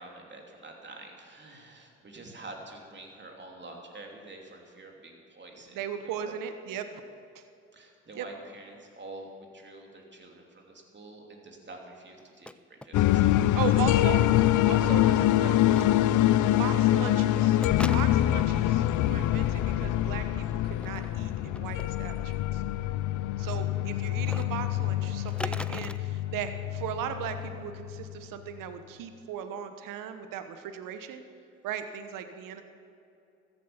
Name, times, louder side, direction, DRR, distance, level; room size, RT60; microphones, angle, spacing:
voice 1, 0.0-5.8 6.0-6.3 7.7-9.3 9.5-13.7, right 2 dB, 30° right, 1 dB, 3.1 m, -47 dB
voice 2, 5.7-7.0 7.3-7.4 8.1-8.3 13.6-14.2 14.7-15.6 16.6-17.6 17.9-22.6 23.4-31.2 31.6-32.6, right 8 dB, 60° right, 9 dB, 1.2 m, -37 dB
sound 1, 12.2-12.5 12.8-13.5 13.7-13.8 15.7-15.9 17.6-18.4 20.7-21.1 21.5-21.9 24.2-24.5 25.3-26.0, left 1 dB, 5° left, 0.3 m, -39 dB
sound 2, 12.9-28.0, left 13 dB, 55° left, 0.6 m, -25 dB
14.0 x 10.0 x 7.2 m, 2.6 s
hypercardioid pair, 60°, 36 cm